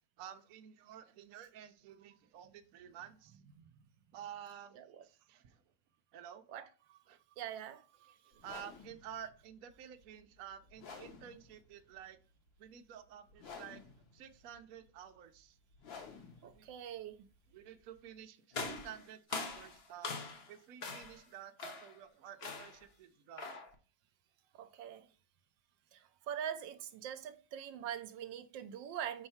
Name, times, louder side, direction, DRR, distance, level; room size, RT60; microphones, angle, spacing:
voice 1, 0.2-3.4 4.1-5.6 6.1-6.4 7.1-7.2 8.1-12.2 12.6-13.8 14.1-15.6 16.4-16.6 17.5-20.1 20.5-23.7, right 9 dB, 60° right, 1.0 m, -51 dB
voice 2, 6.5-7.0 7.4-8.1 16.4-17.3 24.6-25.1 25.9-29.3, right 9 dB, 80° right, 1.3 m, -43 dB
sound 1, 8.3-18.2, left 5 dB, 90° left, 2.1 m, -54 dB
sound 2, 18.5-20.5 20.8-21.2 21.6-22.0 22.4-22.8 23.4-23.7, left 4 dB, 40° left, 1.0 m, -42 dB
4.7 x 4.4 x 5.6 m
omnidirectional pair, 2.0 m